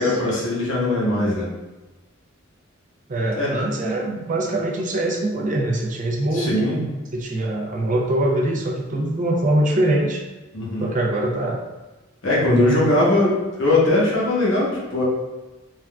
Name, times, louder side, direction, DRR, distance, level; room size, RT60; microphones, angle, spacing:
voice 1, 0.0-1.5 3.4-3.6 6.3-6.9 10.5-10.9 12.2-15.0, left 2 dB, 70° left, -5 dB, 0.9 m, -20 dB
voice 2, 3.1-6.5 7.1-10.2 10.8-11.6 12.4-12.8, right 1 dB, 40° right, 0 dB, 0.4 m, -23 dB
3.3 x 2.4 x 2.2 m, 1.1 s
head